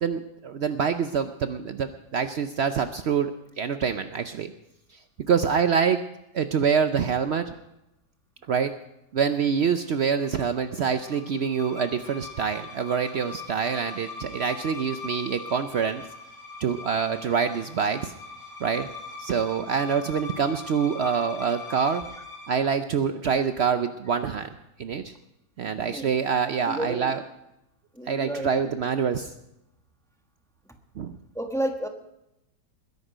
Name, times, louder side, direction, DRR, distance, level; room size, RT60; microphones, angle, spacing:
voice 1, 0.0-4.5 5.3-6.0 6.3-7.5 8.5-8.7 9.1-16.0 16.6-18.1 18.6-18.9 19.2-22.0 22.5-24.5 24.8-25.1 25.6-27.2 28.1-29.3 31.0-31.1, right 6 dB, 80° right, 9 dB, 0.5 m, -26 dB
sound 1, 10.0-22.7, left 3 dB, 40° left, 2.9 m, -41 dB
voice 2, 25.6-26.1 26.7-27.2 27.9-28.7 31.3-31.9, right 1 dB, ahead, 4 dB, 1.1 m, -31 dB
21.0 x 11.0 x 5.0 m, 0.87 s
omnidirectional pair, 1.9 m